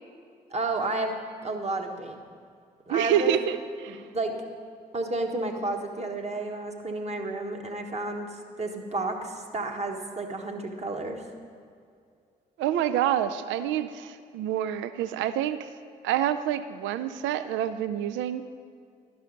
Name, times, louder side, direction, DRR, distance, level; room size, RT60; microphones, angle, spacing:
voice 1, 0.5-1.1 1.4-2.2 2.9-3.3 3.9-4.4 4.9-11.2, right 2 dB, 30° right, 3 dB, 1.3 m, -31 dB
voice 2, 2.9-4.0 12.6-15.7 16.0-18.4, right 11 dB, 65° right, 12 dB, 0.4 m, -27 dB
11.5 x 5.5 x 5.1 m, 2.2 s
hypercardioid pair, 40°, 21 cm